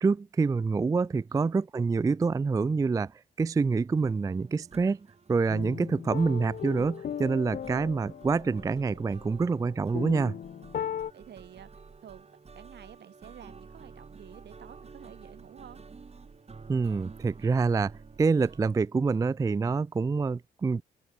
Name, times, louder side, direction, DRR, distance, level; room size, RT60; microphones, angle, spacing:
voice 1, 0.0-5.0 5.3-10.4 16.7-20.8, right 4 dB, 20° right, 0.3 m, -27 dB
sound 1, 3.9-18.7, right 4 dB, 35° right, 2.3 m, -51 dB
sound 2, 5.5-11.1, left 9 dB, 50° left, 0.6 m, -38 dB
voice 2, 11.1-12.3 12.5-15.8, right 10 dB, 70° right, 3.9 m, -50 dB
open air
supercardioid pair, 65°, 18 cm